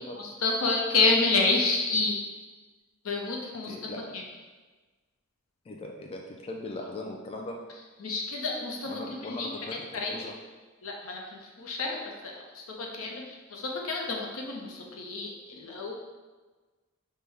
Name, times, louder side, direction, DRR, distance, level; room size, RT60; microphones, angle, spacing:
voice 1, 0.0-2.2 3.0-3.8 4.1-4.2 8.0-9.5 9.9-10.1 10.8-12.0 12.2-15.9, left 3 dB, 75° left, 0 dB, 0.7 m, -29 dB
voice 2, 3.7-4.4 5.7-7.6 8.9-10.3, left 2 dB, 25° left, 1 dB, 0.3 m, -39 dB
5.3 x 2.2 x 3.3 m, 1.3 s
head